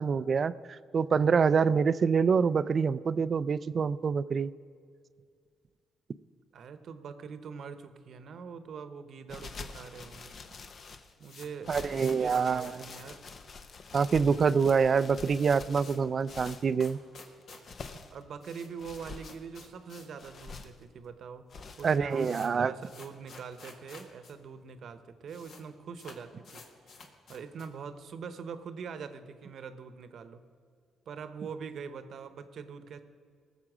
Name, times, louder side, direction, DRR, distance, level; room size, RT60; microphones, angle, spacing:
voice 1, 0.0-4.5 11.7-12.7 13.9-17.0 21.8-22.7, right 5 dB, 45° right, 17 dB, 0.4 m, -26 dB
voice 2, 6.5-10.4 11.2-13.2 18.1-21.5 21.8-27.0 27.3-30.4 31.1-33.0, right 6 dB, 60° right, 11 dB, 0.9 m, -43 dB
sound 1, 9.3-11.1 11.6-16.7 17.4-18.2 18.8-19.3 20.2-20.8 21.5-22.0, left 4 dB, 50° left, 0.9 m, -46 dB
sound 2, 11.1-14.1 14.3-14.4 14.7-14.8 15.0-20.2 20.5-20.6 21.3-21.4 21.6-24.3 24.6-24.7 24.9-25.6 25.9-27.8, left 4 dB, 65° left, 1.7 m, -51 dB
19.0 x 7.2 x 6.1 m, 2.1 s
cardioid pair, 90°, 0 cm